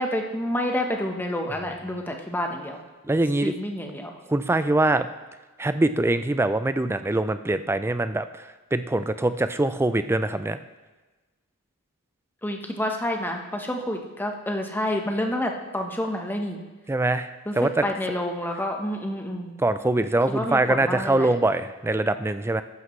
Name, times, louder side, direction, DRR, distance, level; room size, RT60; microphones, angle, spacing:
voice 1, 0.0-2.8 3.4-4.1 12.4-16.6 17.5-19.5 20.3-21.3, left 1 dB, 10° left, 2 dB, 1.0 m, -29 dB
voice 2, 3.1-3.5 4.3-5.1 5.6-8.2 8.7-10.6 16.9-17.3 17.6-17.8 19.6-22.6, right 2 dB, 10° right, 11 dB, 0.4 m, -23 dB
14.0 x 11.0 x 3.2 m, 1.2 s
head